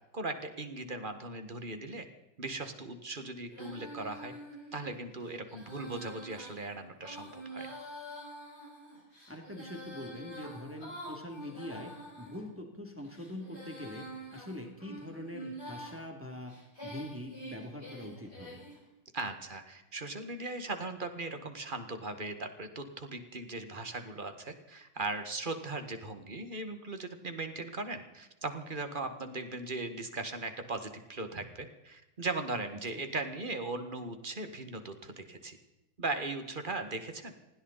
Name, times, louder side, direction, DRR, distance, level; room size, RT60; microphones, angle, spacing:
voice 1, 0.1-2.0 2.4-4.3 4.7-7.7 19.1-35.6 36.0-37.3, right 2 dB, 25° right, 7 dB, 1.7 m, -38 dB
Female singing, 3.5-12.4 13.0-16.0 16.5-18.8, right 1 dB, 30° left, 7.5 m, -46 dB
voice 2, 9.3-14.1 14.3-16.5 16.8-18.6 32.9-33.0, left 1 dB, 5° right, 2 dB, 2.6 m, -43 dB
20.0 x 16.5 x 4.1 m, 1.0 s
omnidirectional pair, 2.1 m